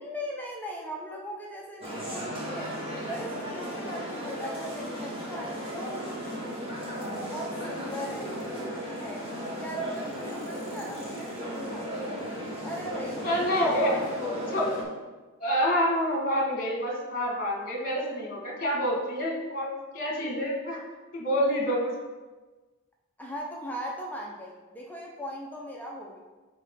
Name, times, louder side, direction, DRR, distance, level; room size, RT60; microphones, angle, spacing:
voice 1, 0.0-2.7 3.1-6.0 6.8-9.3 9.6-12.2 12.6-13.2 13.6-14.4 23.2-26.2, equal, 10° left, -2 dB, 0.7 m, -39 dB
sound 1, 1.8-14.8, equal, 25° right, 1.5 m, -35 dB
voice 2, 13.2-14.0 14.5-14.7 15.4-20.8 21.1-21.9, equal, 40° left, -2 dB, 1.6 m, -27 dB
9.9 x 3.7 x 3.7 m, 1.3 s
head